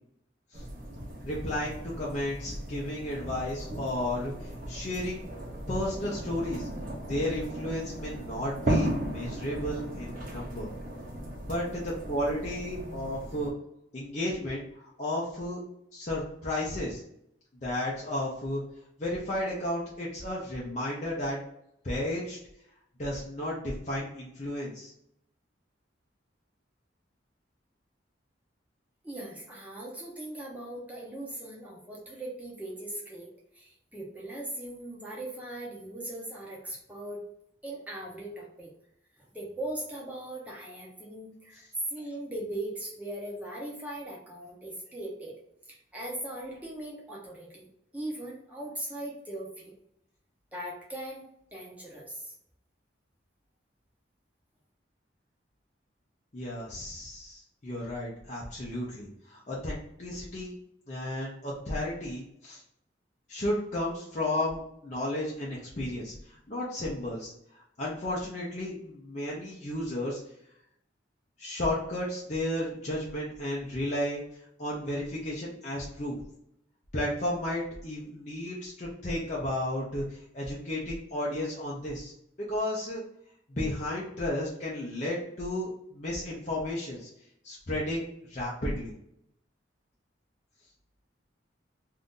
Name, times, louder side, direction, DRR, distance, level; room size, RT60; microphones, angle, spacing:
sound 1, 0.5-13.5, right 1 dB, 45° right, 0.7 m, -36 dB
voice 1, 1.2-5.2 5.7-6.7 7.0-10.7 11.4-13.5 13.9-15.6 15.9-17.0 17.6-18.6 19.0-21.4 21.8-22.4 23.0-24.9 56.3-60.5 60.9-62.6 63.3-70.2 71.4-74.2 74.6-76.2 76.9-82.1 82.4-83.0 83.5-87.1 87.4-88.9, left 1 dB, 40° left, -6 dB, 0.6 m, -33 dB
voice 2, 29.0-37.2 37.6-38.7 39.2-45.3 45.7-47.7 47.9-49.7 50.5-52.3, right 1 dB, 10° right, -4 dB, 0.7 m, -39 dB
2.7 x 2.5 x 3.6 m, 0.76 s
head